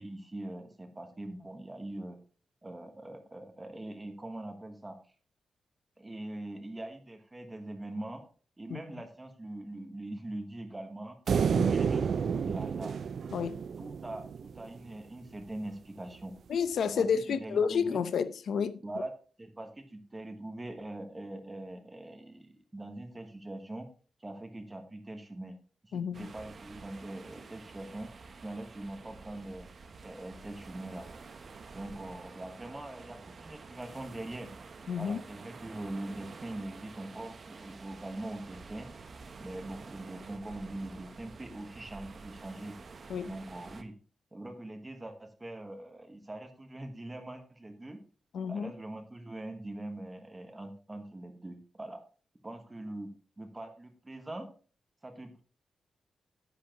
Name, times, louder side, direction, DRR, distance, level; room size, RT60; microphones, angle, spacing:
voice 1, 0.0-2.2 2.6-5.0 6.0-8.2 8.6-11.2 11.5-13.0 13.8-16.3 16.8-18.0 18.8-19.1 19.4-23.9 24.2-25.5 25.8-28.1 28.4-29.7 30.0-31.1 31.7-34.5 34.9-38.9 39.4-42.7 43.2-43.9 44.3-48.0 48.5-52.0 52.4-53.1 53.4-54.5 55.0-55.4, right 1 dB, 15° right, 1.2 m, -42 dB
sound 1, 11.3-14.6, right 6 dB, 60° right, 0.4 m, -30 dB
voice 2, 16.5-18.8 25.9-26.3 34.9-35.2 43.1-43.3 48.3-48.7, left 6 dB, 75° left, 0.7 m, -30 dB
sound 2, 26.1-43.8, right 4 dB, 40° right, 0.8 m, -49 dB
10.0 x 8.4 x 2.9 m
wide cardioid pair, 150°, 0 cm